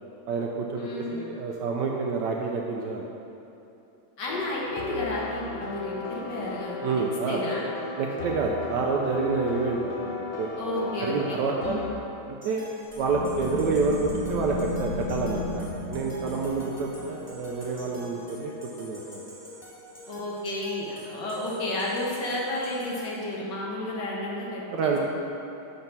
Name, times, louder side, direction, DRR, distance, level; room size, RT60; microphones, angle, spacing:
voice 1, 0.3-3.0 6.8-7.4 8.0-11.8 12.3-12.7 13.0-15.6 15.9-18.5 18.8-19.2 24.7-25.0, right 4 dB, 75° right, -1 dB, 1.0 m, -28 dB
voice 2, 0.8-1.2 4.2-7.7 10.6-11.9 20.1-24.9, left 1 dB, 65° left, -4 dB, 1.6 m, -32 dB
sound 1, 4.3-11.9, left 4 dB, 85° left, 1.6 m, -36 dB
sound 2, 12.4-23.1, equal, 10° left, 1.1 m, -46 dB
sound 3, 12.9-18.2, left 2 dB, 35° left, 0.5 m, -34 dB
5.4 x 5.4 x 5.9 m, 2.8 s
omnidirectional pair, 2.2 m